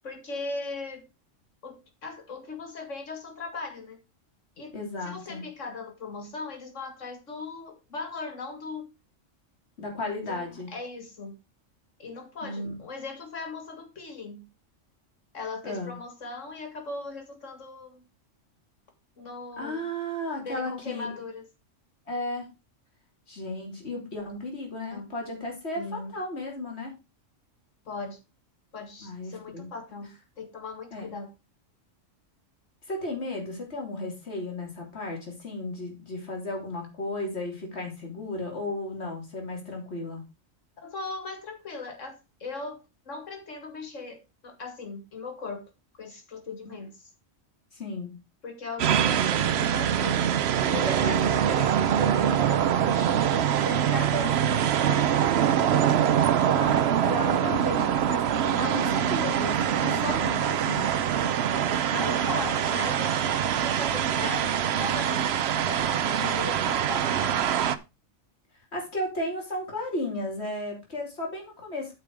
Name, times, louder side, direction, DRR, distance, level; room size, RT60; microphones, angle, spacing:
voice 1, 0.0-1.1 1.6-4.0 4.6-4.8 5.0-8.9 9.8-9.9 10.2-11.3 12.0-14.5 15.3-18.0 19.2-19.8 20.4-21.5 24.9-25.1 25.8-26.1 27.9-28.2 28.7-31.3 40.8-47.0 48.4-50.4 50.7-54.5 54.8-55.6 57.6-58.0 59.8-60.1 61.9-65.3 65.6-67.5, left 3 dB, 70° left, 6 dB, 2.3 m, -39 dB
voice 2, 4.7-5.5 9.8-10.7 12.4-12.7 15.6-15.9 19.6-21.1 22.1-22.5 23.3-26.9 29.0-29.7 30.9-31.1 32.8-40.2 47.7-48.1 51.2-51.5 56.5-60.9 66.2-66.4 66.6-66.8 68.7-72.0, left 1 dB, 55° left, 1 dB, 3.2 m, -34 dB
sound 1, 48.8-67.8, right 9 dB, 60° right, 0.9 m, -24 dB
8.6 x 6.1 x 4.6 m, 0.26 s
omnidirectional pair, 1.3 m